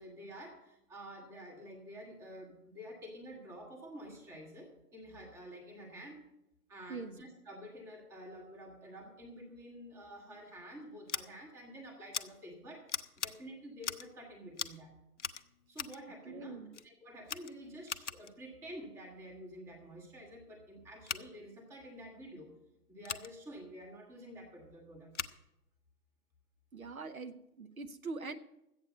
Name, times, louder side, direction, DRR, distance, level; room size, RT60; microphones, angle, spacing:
voice 1, 0.0-6.2 6.7-14.9 15.7-22.5 22.9-25.1, equal, 5° right, 1 dB, 1.0 m, -49 dB
Scissors, 11.1-11.2 12.1-12.3 12.9-13.3 13.8-14.1 14.5-14.8 15.2-16.0 16.7-16.9 17.2-18.3 21.0-21.2 23.0-23.3 25.1-25.4, left 7 dB, 50° left, 0.6 m, -40 dB
voice 2, 16.3-16.7 26.7-28.3, right 4 dB, 60° right, 9 dB, 0.8 m, -43 dB
13.0 x 8.2 x 6.5 m, 0.90 s
figure-of-eight pair, 130°, 48 cm